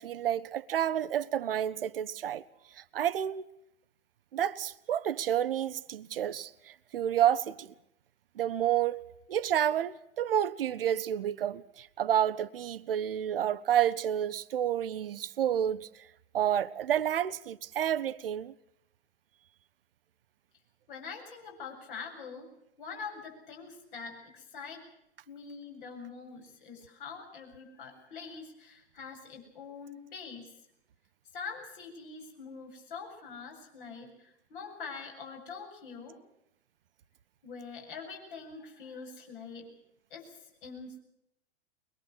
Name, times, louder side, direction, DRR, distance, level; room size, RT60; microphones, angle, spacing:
voice 1, 0.0-2.4 2.8-3.4 4.3-7.7 8.4-9.0 9.3-15.9 16.3-18.5, right 10 dB, 55° right, 0.9 m, -30 dB
voice 2, 20.9-22.5 22.8-24.8 25.3-30.5 31.3-36.2 37.4-39.7 40.1-41.0, left 5 dB, 50° left, 7.9 m, -44 dB
23.5 x 22.0 x 6.3 m
figure-of-eight pair, 105°, 34 cm